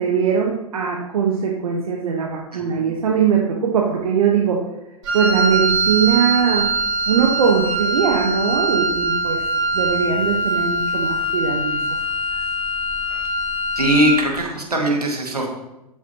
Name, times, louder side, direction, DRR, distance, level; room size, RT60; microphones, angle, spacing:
voice 1, 0.0-4.7 5.1-6.7 7.1-9.4 9.7-11.8 13.1-13.2, right 7 dB, 65° right, -1 dB, 1.3 m, -20 dB
Wind instrument woodwind instrument, 5.0-14.3, right 1 dB, 50° right, 3.8 m, -22 dB
voice 2, 13.8-15.5, right 1 dB, 85° right, 1 dB, 2.0 m, -19 dB
12.5 x 7.1 x 3.0 m, 0.92 s
figure-of-eight pair, 100°, 19 cm